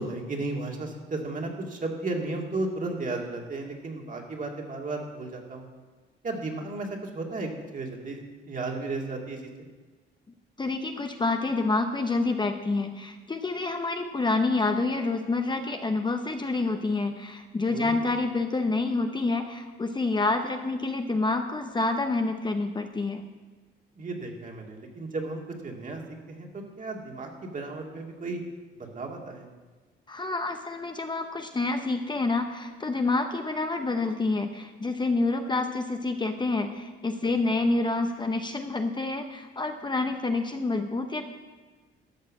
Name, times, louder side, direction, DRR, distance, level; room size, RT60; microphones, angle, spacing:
voice 1, 0.0-5.7 6.2-9.7 17.7-18.1 24.0-26.0 26.3-28.4 28.7-29.5, right 2 dB, 40° right, 1 dB, 2.1 m, -34 dB
voice 2, 10.6-23.2 30.1-41.2, left 3 dB, 20° left, 5 dB, 0.8 m, -28 dB
13.0 x 5.5 x 7.4 m, 1.3 s
cardioid pair, 90°, 20 cm